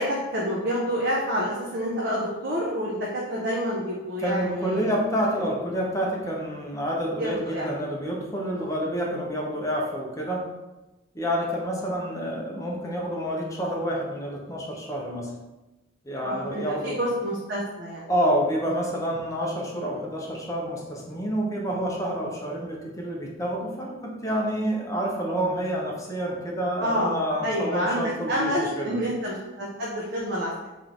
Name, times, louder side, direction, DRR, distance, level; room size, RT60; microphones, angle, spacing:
voice 1, 0.0-4.9 7.2-7.7 16.2-18.1 26.8-30.7, equal, 55° right, -4 dB, 0.6 m, -28 dB
voice 2, 4.2-10.5 11.1-15.3 16.0-17.0 18.1-28.9, equal, 15° left, -2 dB, 0.7 m, -28 dB
3.1 x 3.1 x 3.8 m, 1.1 s
head